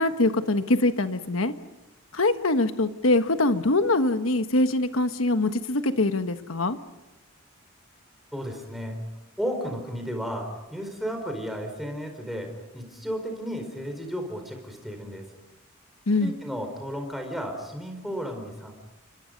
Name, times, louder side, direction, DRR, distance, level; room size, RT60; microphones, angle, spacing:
voice 1, 0.0-1.5 2.1-6.8 16.1-16.3, left 2 dB, 70° left, 9 dB, 1.3 m, -23 dB
voice 2, 8.3-9.0 9.4-12.5 12.7-15.2 16.2-18.7, equal, ahead, 3 dB, 4.6 m, -33 dB
29.5 x 24.5 x 5.3 m, 0.99 s
head